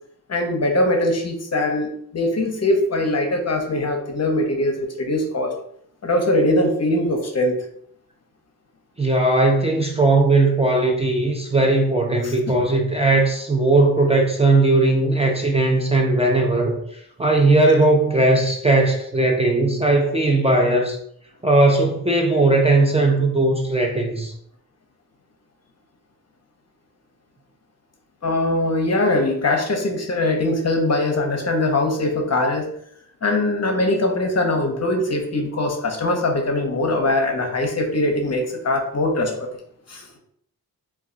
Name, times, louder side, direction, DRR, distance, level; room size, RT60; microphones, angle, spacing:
voice 1, 0.3-5.5 6.0-7.6 12.2-12.6 28.2-32.6 33.2-39.5 39.9-40.1, left 1 dB, 45° left, 3 dB, 0.7 m, -21 dB
voice 2, 9.0-16.8 17.2-21.0 21.4-24.3, right 2 dB, 15° right, 0 dB, 0.5 m, -18 dB
2.3 x 2.2 x 3.8 m, 0.67 s
cardioid pair, 65°, 37 cm